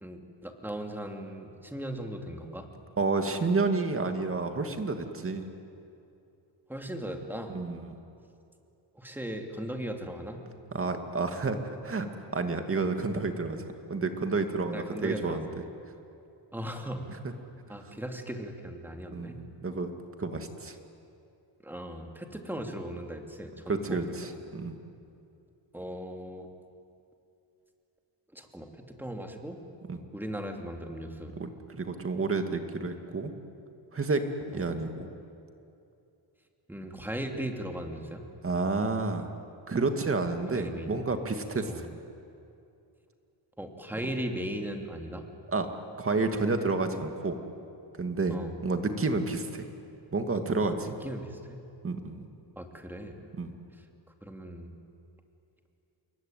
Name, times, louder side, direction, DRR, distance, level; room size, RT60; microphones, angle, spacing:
voice 1, 0.0-2.7 6.7-7.6 8.9-10.4 14.7-15.4 16.5-17.1 17.7-19.4 21.6-24.4 25.7-26.5 28.3-29.6 30.1-31.4 34.5-34.8 36.7-38.2 40.5-41.1 41.7-41.9 43.6-45.2 48.3-48.5 51.0-51.6 52.6-53.2 54.2-54.8, equal, 5° right, 3 dB, 2.8 m, -38 dB
voice 2, 3.0-5.5 7.5-7.8 10.7-11.6 11.8-12.1 12.3-13.6 13.9-15.5 19.1-19.9 20.2-20.7 23.7-24.7 29.9-30.0 31.4-33.3 33.9-34.2 34.5-35.1 38.4-39.3 39.7-41.9 45.5-45.7 46.0-47.4 48.0-49.6 50.1-51.0 51.8-52.3 53.4-53.5, right 3 dB, 30° right, 6 dB, 2.3 m, -30 dB
27.5 x 23.0 x 9.3 m, 2.7 s
cardioid pair, 120°, 43 cm